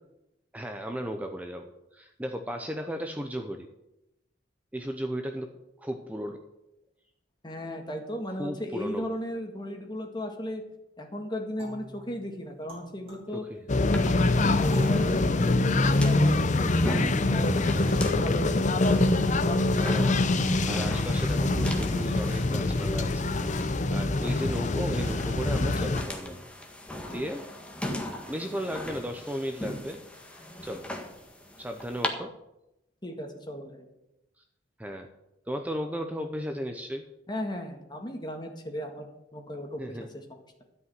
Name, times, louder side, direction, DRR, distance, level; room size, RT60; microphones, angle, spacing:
voice 1, 0.5-3.7 4.7-5.5 5.8-6.4 8.3-9.1 13.3-14.0 17.7-18.3 19.8-20.4 20.7-23.3 23.6-26.4 27.0-27.5 28.3-30.0 30.3-30.9 31.6-32.3 34.4-34.5 34.8-35.1 35.5-37.1 39.8-40.1, equal, 10° right, 5 dB, 0.7 m, -35 dB
voice 2, 7.4-10.6 11.0-13.4 13.9-16.7 17.3-18.6 19.4-19.6 33.0-33.9 37.3-40.4, left 1 dB, 25° left, 4 dB, 1.8 m, -36 dB
sound 1, 11.6-14.1 14.7-17.5, right 1 dB, 35° right, 4.8 m, -47 dB
sound 2, 13.7-26.0, left 2 dB, 40° left, 0.7 m, -24 dB
sound 3, 13.9-32.1, left 1 dB, 5° left, 1.6 m, -39 dB
13.0 x 5.5 x 9.3 m, 0.90 s
head